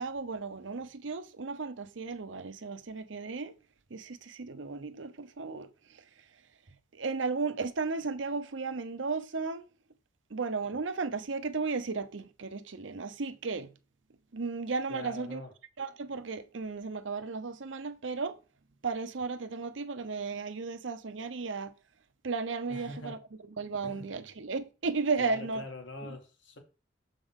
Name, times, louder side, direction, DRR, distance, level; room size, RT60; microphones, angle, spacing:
voice 1, 0.0-3.6 3.9-6.2 6.7-9.7 10.3-13.7 14.3-15.4 15.8-18.4 18.8-21.7 22.2-23.2 23.6-25.6 26.0-26.2, right 4 dB, 90° right, 0.8 m, -35 dB
voice 2, 14.9-15.5 22.7-23.2 23.8-24.2 25.2-26.6, left 2 dB, 75° left, 1.8 m, -43 dB
7.2 x 5.2 x 3.7 m
head